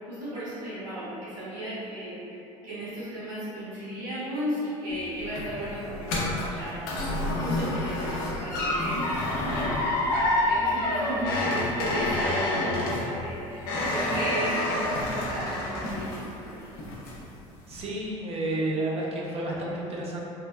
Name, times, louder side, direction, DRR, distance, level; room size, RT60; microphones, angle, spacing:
voice 1, 0.1-2.2 2.6-6.2 6.5-6.9 7.4-9.0 9.5-9.8 10.5-16.6, equal, 80° right, -13 dB, 0.8 m, -35 dB
sound 1, 4.9-16.5 16.8-17.3 17.7-17.8, left 1 dB, 65° left, 0.6 m, -28 dB
sound 2, 7.3-12.9, left 1 dB, 20° left, 0.4 m, -45 dB
voice 2, 17.7-20.2, right 1 dB, 40° right, -3 dB, 0.6 m, -31 dB
3.3 x 2.1 x 2.2 m, 2.9 s
hypercardioid pair, 70°, 16 cm